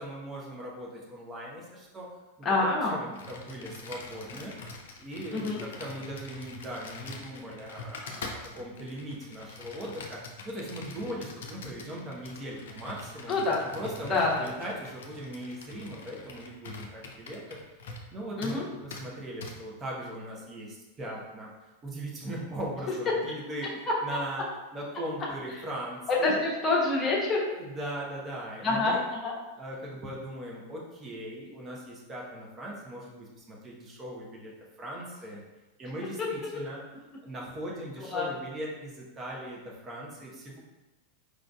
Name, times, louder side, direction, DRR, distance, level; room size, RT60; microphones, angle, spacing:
voice 1, 0.0-1.6 1.9-2.0 2.6-4.5 5.0-5.5 5.8-7.8 8.3-10.2 10.5-13.4 13.7-17.4 18.1-18.7 19.0-20.7 21.0-21.5 21.8-23.7 24.0-24.4 24.7-26.4 27.6-29.0 29.6-31.8 32.1-33.0 34.0-34.5 34.8-35.4 35.8-36.8 37.2-38.9 39.2-39.6 39.9-40.3, right 1 dB, 25° right, -3 dB, 1.0 m, -39 dB
voice 2, 2.4-3.0 5.3-5.6 13.3-13.6 14.1-14.3 18.4-18.6 26.2-27.4 28.6-29.0 29.2-29.3 36.4-36.6 38.1-38.3, left 3 dB, 20° left, -4 dB, 1.1 m, -26 dB
Computer keyboard, 3.1-18.1 18.4-18.6 18.9-19.0 19.4-19.5, left 3 dB, 60° left, 0.5 m, -44 dB
5.0 x 3.8 x 2.3 m, 1.1 s
figure-of-eight pair, 90°, 0 cm